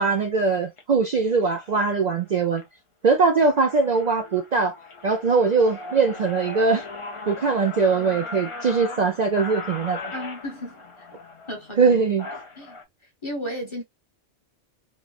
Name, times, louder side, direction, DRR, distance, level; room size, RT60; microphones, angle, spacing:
voice 1, 0.0-2.6 3.0-4.8 5.0-6.8 7.3-10.1 11.8-12.3, right 4 dB, 80° right, 0.3 m, -21 dB
sound 1, 0.6-0.8 1.5-1.7 2.2-2.6 3.1-3.2 3.4-12.8, left 3 dB, 50° left, 0.3 m, -38 dB
voice 2, 10.1-11.1 11.5-12.0 12.6-12.8 13.2-13.8, equal, 25° left, 0.8 m, -34 dB
3.1 x 2.1 x 2.3 m
omnidirectional pair, 1.3 m